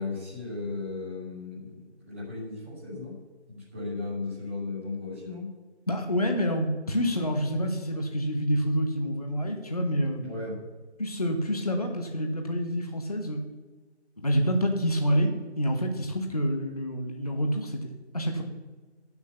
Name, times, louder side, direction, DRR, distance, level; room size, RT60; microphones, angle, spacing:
voice 1, 0.0-3.2 3.5-5.5 10.2-10.6, left 3 dB, 10° right, -9 dB, 1.8 m, -36 dB
voice 2, 5.9-10.4 11.0-13.4 14.2-15.3 15.6-17.9 18.1-18.4, equal, 35° left, 3 dB, 1.0 m, -27 dB
10.5 x 7.1 x 6.8 m, 1.3 s
figure-of-eight pair, 170°, 34 cm